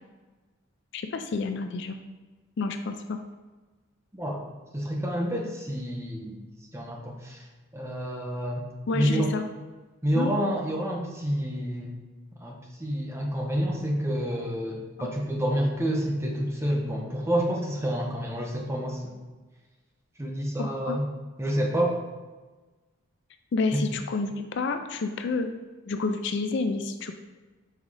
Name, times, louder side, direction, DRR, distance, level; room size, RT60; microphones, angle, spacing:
voice 1, 0.9-2.0 2.6-3.2 8.9-9.4 10.1-10.3 15.0-15.1 20.6-21.0 23.5-25.5 25.9-27.2, left 3 dB, 55° left, 7 dB, 0.4 m, -29 dB
voice 2, 4.1-4.4 4.7-6.4 6.7-7.4 7.7-8.6 8.9-9.3 10.0-11.9 12.4-19.1 20.2-21.1 21.4-22.0 23.7-23.8, equal, 10° right, 0 dB, 0.7 m, -28 dB
5.6 x 3.7 x 4.8 m, 1.3 s
head